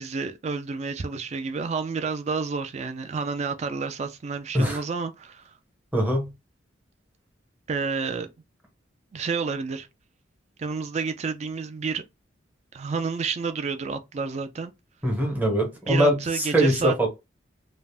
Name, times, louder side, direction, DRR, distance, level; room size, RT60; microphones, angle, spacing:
voice 1, 0.0-5.5 7.7-8.3 9.1-9.9 10.6-12.0 12.7-14.7 15.9-17.1, right 5 dB, 35° right, 0.3 m, -30 dB
voice 2, 5.9-6.3 15.0-17.1, equal, 10° right, 0.7 m, -22 dB
2.4 x 2.1 x 3.3 m
head